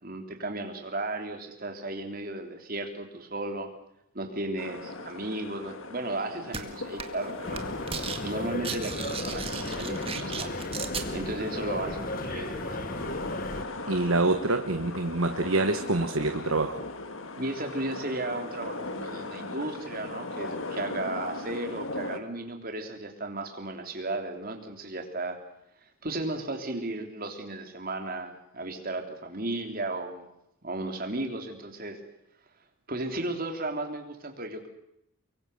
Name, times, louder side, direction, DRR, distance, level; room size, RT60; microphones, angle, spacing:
voice 1, 0.0-3.7 4.1-7.6 8.2-10.5 11.1-12.8 17.3-25.4 25.8-30.3 30.6-32.0 32.9-34.7, right 2 dB, 40° right, 4 dB, 3.3 m, -35 dB
sound 1, 4.6-22.2, left 3 dB, 65° left, 1.9 m, -38 dB
sound 2, 6.5-6.6 7.0-7.2 7.5-8.2 8.5-11.1, right 6 dB, 25° right, 1.9 m, -35 dB
sound 3, 7.4-13.6, left 1 dB, 40° left, 1.8 m, -35 dB
voice 2, 13.9-16.8, right 2 dB, 70° right, 7 dB, 1.2 m, -26 dB
24.0 x 23.5 x 6.8 m, 0.81 s
head